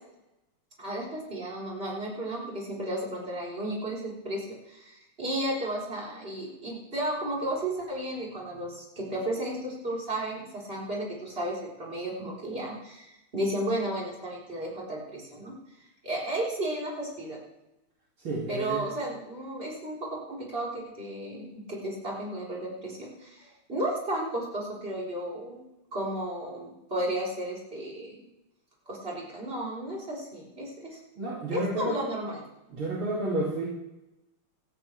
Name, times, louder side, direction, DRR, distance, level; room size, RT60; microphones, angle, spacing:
voice 1, 0.8-4.4 4.7-15.5 16.0-17.4 18.5-20.0 20.3-25.6 25.9-28.2 28.9-31.0 31.5-32.4, right 1 dB, 25° right, -4 dB, 4.4 m, -33 dB
voice 2, 18.2-18.8 31.2-32.0 32.7-33.6, right 1 dB, 70° right, -6 dB, 3.5 m, -30 dB
18.0 x 13.5 x 3.4 m, 0.92 s
omnidirectional pair, 2.4 m